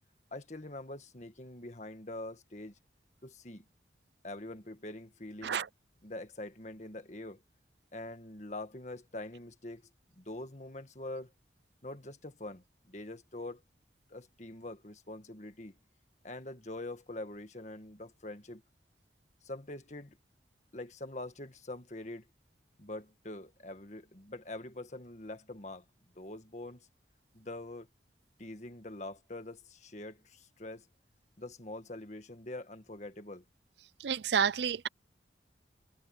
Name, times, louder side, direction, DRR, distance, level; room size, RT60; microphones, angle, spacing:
voice 1, 0.3-2.8 3.2-3.7 4.2-5.6 6.0-7.4 7.9-9.8 10.2-11.3 11.8-13.6 14.1-15.8 16.2-18.6 19.4-20.2 20.7-22.2 22.8-25.9 26.2-26.9 27.3-27.9 28.4-30.9 31.4-33.4, left 2 dB, 40° left, 1.7 m, -44 dB
voice 2, 34.0-34.9, right 7 dB, 75° right, 0.5 m, -30 dB
head